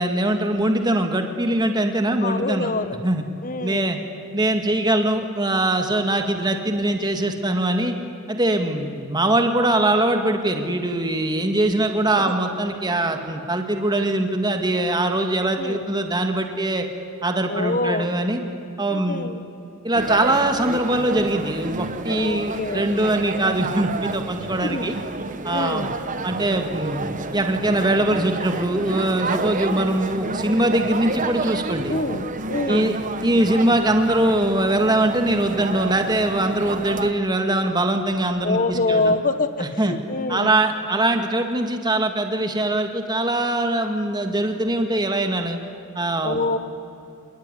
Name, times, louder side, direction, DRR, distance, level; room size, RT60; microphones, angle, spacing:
voice 1, 0.0-2.7 3.0-3.2 3.6-4.0 4.3-7.9 8.3-16.9 17.2-18.4 18.8-19.3 19.8-25.0 25.4-25.9 26.2-27.0 27.3-32.0 32.7-33.0 33.2-39.1 39.6-40.0 40.3-45.6 46.0-46.4, right 1 dB, 20° right, 5 dB, 1.9 m, -22 dB
voice 2, 2.2-3.0 3.4-4.0 12.2-12.3 15.6-15.8 17.5-18.1 18.9-19.4 22.1-23.2 24.6-24.9 25.5-25.9 31.9-33.0 38.4-40.6 46.2-46.6, left 2 dB, 40° left, 12 dB, 1.4 m, -26 dB
sound 1, 19.9-37.1, right 3 dB, 35° right, 1.2 m, -30 dB
26.5 x 21.5 x 10.0 m, 2.7 s
head